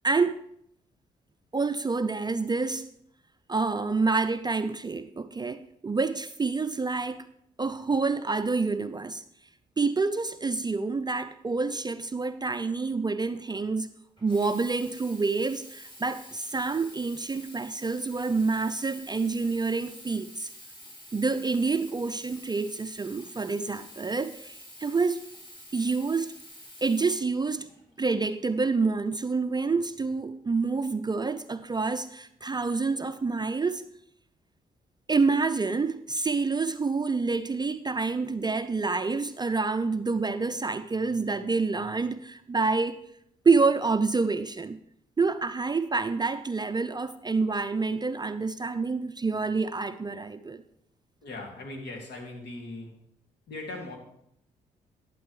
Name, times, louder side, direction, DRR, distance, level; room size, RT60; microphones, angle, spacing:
voice 1, 0.0-0.4 1.5-2.9 3.5-7.3 7.6-9.2 9.8-13.9 14.2-20.5 21.1-25.2 25.7-26.3 26.8-27.7 28.0-33.8 35.1-43.0 43.4-44.8 45.2-50.6, right 4 dB, 20° right, 10 dB, 0.5 m, -27 dB
Sink (filling or washing), 14.2-27.9 28.7-28.8, equal, 25° left, 4.1 m, -48 dB
voice 2, 51.2-52.9 53.5-54.0, left 2 dB, 65° left, 1 dB, 2.4 m, -39 dB
11.5 x 8.4 x 3.2 m, 0.74 s
hypercardioid pair, 45°, 19 cm